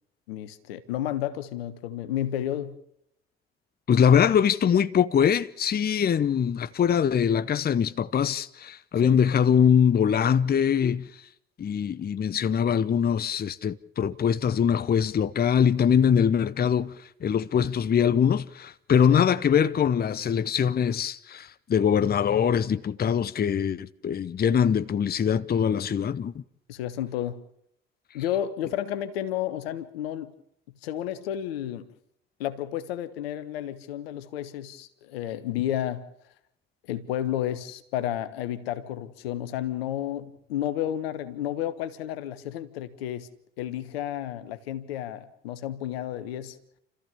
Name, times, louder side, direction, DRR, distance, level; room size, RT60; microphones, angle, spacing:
voice 1, 0.3-2.8 9.0-9.2 19.1-19.2 26.7-27.4 28.1-30.3 30.8-31.9 32.4-36.1 36.9-43.3 43.6-46.6, left 11 dB, 75° left, 1.3 m, -31 dB
voice 2, 3.9-11.1 11.6-16.9 17.2-26.4, left 8 dB, 30° left, 0.8 m, -23 dB
29.5 x 14.5 x 7.0 m
figure-of-eight pair, 50°, 30 cm